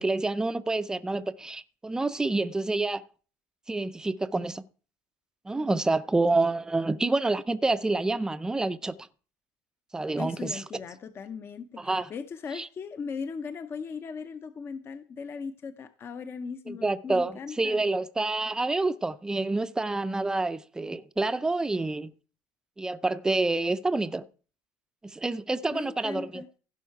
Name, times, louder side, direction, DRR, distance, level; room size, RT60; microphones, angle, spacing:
voice 1, 0.0-3.0 3.7-4.6 5.5-9.0 9.9-10.6 11.8-12.1 12.5-12.7 16.7-22.1 22.8-24.2 25.0-26.4, right 2 dB, 10° right, 0.5 m, -28 dB
voice 2, 10.2-17.8 25.7-26.5, left 5 dB, 35° left, 0.6 m, -38 dB
15.5 x 5.5 x 4.7 m
cardioid pair, 130°, 7 cm